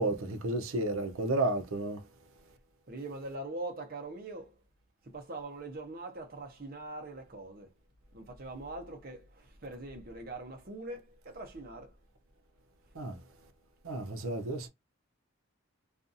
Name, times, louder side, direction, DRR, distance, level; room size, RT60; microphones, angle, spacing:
voice 1, 0.0-2.0 13.0-13.2 13.8-14.7, right 2 dB, 85° right, 0.6 m, -32 dB
voice 2, 2.9-4.5 5.1-7.7 8.1-9.2 9.6-11.0 11.3-11.9, right 2 dB, 45° right, 0.8 m, -42 dB
2.6 x 2.4 x 2.6 m
head